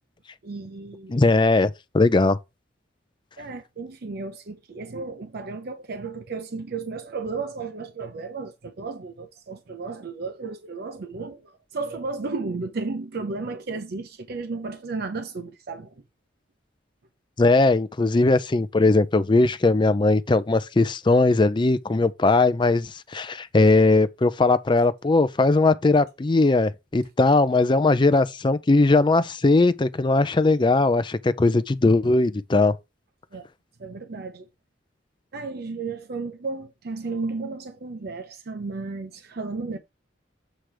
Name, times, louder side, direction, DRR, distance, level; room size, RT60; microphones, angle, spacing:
voice 1, 0.4-1.3 3.4-15.9 33.3-33.5 33.8-34.5 35.3-39.8, right 4 dB, 55° right, 0.6 m, -33 dB
voice 2, 1.1-2.4 17.4-32.7, left 3 dB, 25° left, 0.4 m, -19 dB
7.5 x 3.3 x 4.9 m
head